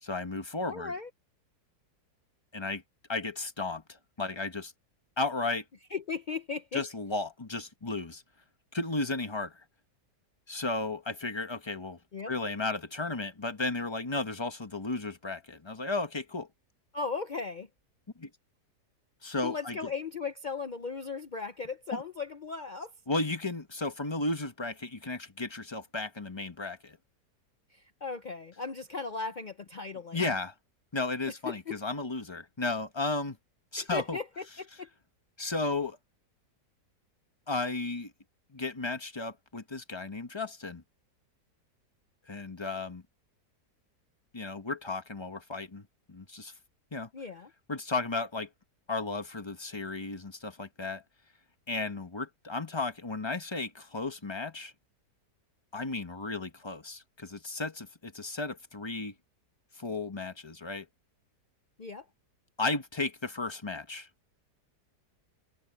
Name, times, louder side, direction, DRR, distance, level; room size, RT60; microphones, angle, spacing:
voice 1, 0.0-0.9 2.5-2.8 3.1-4.7 5.2-5.6 6.7-8.2 8.7-9.6 10.5-12.0 12.3-16.5 18.2-18.3 19.2-19.8 21.9-22.0 23.1-27.0 30.1-30.5 30.9-33.4 33.7-34.2 35.4-36.0 37.5-38.1 38.5-40.8 42.3-43.0 44.3-46.5 46.9-47.1 47.7-48.5 48.9-51.0 51.7-54.7 55.7-59.1 59.7-60.9 62.6-64.1, left 3 dB, 20° left, 1.0 m, -34 dB
voice 2, 0.7-1.1 5.9-6.8 12.1-12.3 16.9-17.7 19.4-22.9 27.7-30.2 31.5-31.8 33.8-34.9 47.1-47.5 61.8-62.1, left 4 dB, 85° left, 0.4 m, -37 dB
omnidirectional pair, 1.8 m